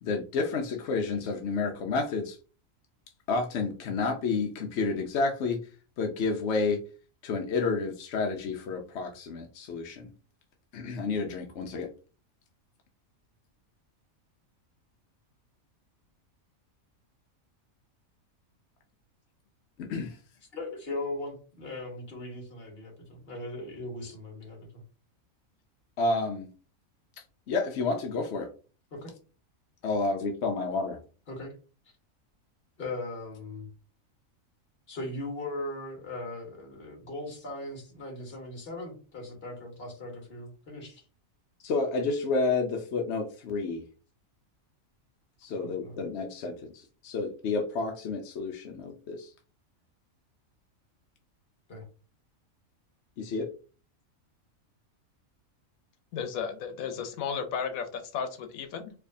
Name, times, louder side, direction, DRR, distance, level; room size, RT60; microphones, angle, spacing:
voice 1, 0.0-2.4 3.3-5.6 6.0-6.8 7.2-10.1 10.7-11.9 19.8-20.2 26.0-26.5 27.5-28.5 29.8-31.0 41.6-43.8 45.4-49.3 53.2-53.5, left 3 dB, 65° left, 3 dB, 0.8 m, -30 dB
voice 2, 20.5-24.8 28.9-29.1 31.3-31.6 32.8-33.7 34.9-41.0 45.6-46.0 51.7-51.8, left 2 dB, 45° left, 2 dB, 1.4 m, -39 dB
voice 3, 56.1-58.9, left 6 dB, 90° left, 7 dB, 1.0 m, -34 dB
4.5 x 2.6 x 2.6 m, 0.37 s
omnidirectional pair, 1.4 m